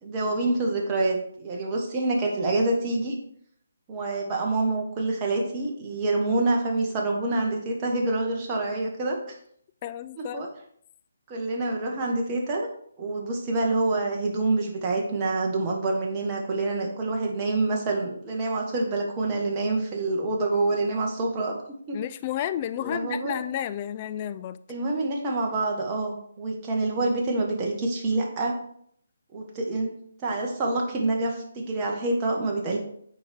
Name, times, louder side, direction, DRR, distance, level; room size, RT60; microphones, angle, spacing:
voice 1, 0.0-3.1 3.9-9.4 10.2-10.5 11.3-12.7 13.0-21.5 21.9-22.0 22.8-23.3 24.7-28.5 29.3-29.9 30.2-32.8, right 2 dB, 25° right, -1 dB, 1.5 m, -27 dB
voice 2, 9.8-10.5 21.9-24.6, left 11 dB, 30° left, 12 dB, 0.4 m, -31 dB
8.4 x 4.6 x 3.6 m, 0.66 s
figure-of-eight pair, 145°, 0 cm